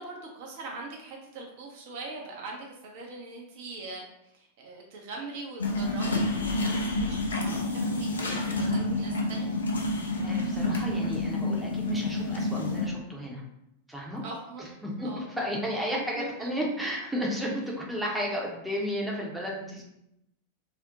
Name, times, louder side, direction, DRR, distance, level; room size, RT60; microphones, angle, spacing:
voice 1, 0.0-9.5 14.2-14.7 15.0-15.2 16.2-16.5, right 3 dB, 50° right, 0 dB, 0.5 m, -42 dB
sound 1, 5.6-12.9, left 2 dB, 70° left, 0.4 m, -29 dB
voice 2, 10.2-13.4 13.9-14.2 14.8-19.9, equal, 5° right, -3 dB, 0.6 m, -33 dB
2.4 x 2.0 x 2.7 m, 0.81 s
figure-of-eight pair, 90°, 0 cm